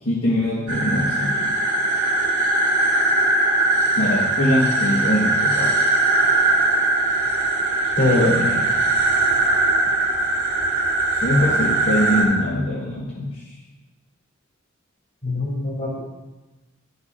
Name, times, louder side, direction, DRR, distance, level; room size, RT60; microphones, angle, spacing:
voice 1, 0.0-1.5 4.0-5.7 11.2-13.4, left 1 dB, 80° left, -7 dB, 1.6 m, -22 dB
sound 1, 0.7-12.2, right 2 dB, 85° right, 2.1 m, -20 dB
voice 2, 8.0-8.7 15.2-16.0, left 2 dB, 60° left, -4 dB, 3.0 m, -21 dB
11.0 x 6.8 x 2.7 m, 1.1 s
head